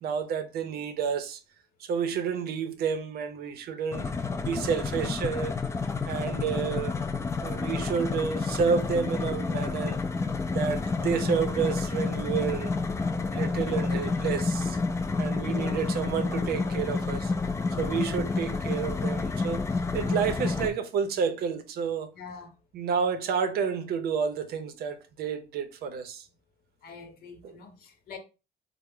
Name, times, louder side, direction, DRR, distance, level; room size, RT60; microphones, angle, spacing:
voice 1, 0.0-1.4 1.8-4.1 4.4-5.6 6.1-7.0 7.4-10.0 10.5-14.8 15.2-17.3 17.8-22.1 22.7-26.3 27.4-27.6, right 6 dB, 65° right, 0.6 m, -30 dB
sound 1, 3.9-20.7, left 4 dB, 15° left, 0.3 m, -29 dB
voice 2, 13.6-14.0 15.5-15.8 22.1-22.5 26.8-28.2, left 4 dB, 60° left, 0.8 m, -44 dB
3.2 x 2.0 x 3.5 m
cardioid pair, 110°, 17 cm